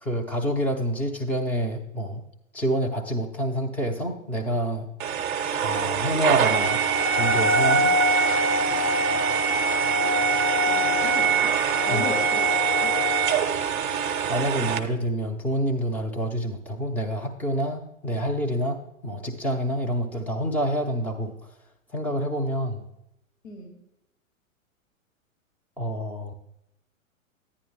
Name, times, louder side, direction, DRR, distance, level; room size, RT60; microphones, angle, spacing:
voice 1, 0.0-2.2 2.5-4.9 5.5-6.8 7.1-7.9 11.9-12.1 14.3-21.3 21.9-22.9 25.8-26.3, equal, 5° left, 1 dB, 0.6 m, -27 dB
sound 1, 5.0-14.8, right 4 dB, 35° right, 0.7 m, -23 dB
voice 2, 9.9-10.2 10.7-11.6 11.9-12.5 12.8-13.0 23.4-23.8, left 4 dB, 55° left, 1 dB, 2.4 m, -36 dB
10.5 x 9.6 x 3.3 m, 0.85 s
figure-of-eight pair, 110°, 41 cm